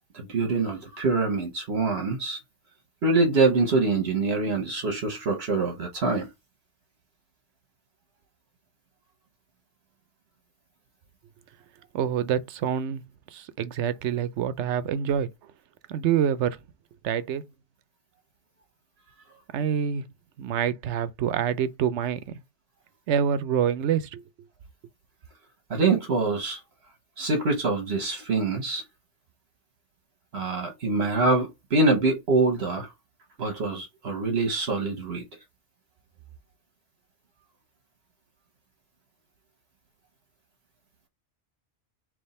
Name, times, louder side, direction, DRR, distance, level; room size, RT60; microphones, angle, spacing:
voice 1, 0.1-2.4 3.0-6.3 25.7-26.6 27.2-28.8 30.3-32.9 33.4-35.2, right 3 dB, 65° right, 1.3 m, -25 dB
voice 2, 11.9-13.0 13.3-15.3 15.9-16.6 17.0-17.4 19.5-20.0 20.4-22.2 23.1-24.2, right 8 dB, 85° right, 0.9 m, -26 dB
3.6 x 3.1 x 4.1 m
omnidirectional pair, 1.1 m